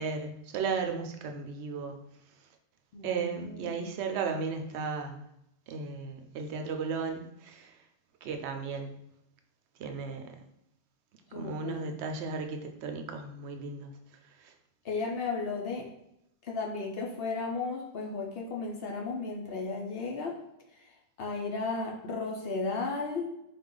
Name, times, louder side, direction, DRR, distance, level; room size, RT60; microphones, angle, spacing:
voice 1, 0.0-2.0 3.0-5.2 5.7-7.7 8.2-8.9 9.8-10.4 11.3-13.9 14.4-14.5, right 5 dB, 80° right, 5 dB, 0.8 m, -35 dB
voice 2, 2.9-3.9 11.3-11.9 14.8-15.9 16.4-20.4 20.7-23.4, left 3 dB, 65° left, 0 dB, 0.8 m, -35 dB
4.0 x 2.4 x 3.7 m, 0.82 s
omnidirectional pair, 1.1 m